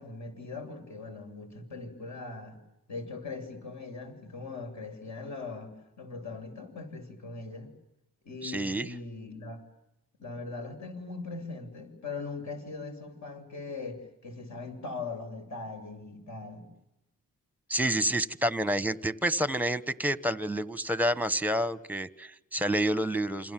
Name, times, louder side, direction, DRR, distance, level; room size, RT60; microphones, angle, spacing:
voice 1, 0.0-2.6 2.9-7.7 8.2-9.6 10.2-16.7, left 3 dB, 50° left, 4 dB, 7.4 m, -40 dB
voice 2, 8.4-8.9 17.7-23.5, right 1 dB, 5° right, 14 dB, 1.3 m, -29 dB
28.5 x 26.5 x 7.7 m, 0.88 s
cardioid pair, 95°, 35 cm